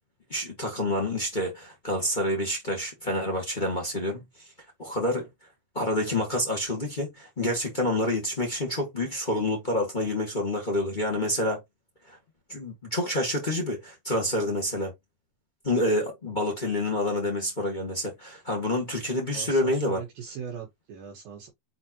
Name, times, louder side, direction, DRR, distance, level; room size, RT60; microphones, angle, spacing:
voice 1, 0.3-4.2 4.8-5.3 5.7-11.6 12.1-12.2 12.5-14.9 15.6-20.0, left 1 dB, 30° left, 0.8 m, -28 dB
voice 2, 19.3-21.5, right 7 dB, 70° right, 3.0 m, -40 dB
7.6 x 4.2 x 2.9 m
omnidirectional pair, 4.5 m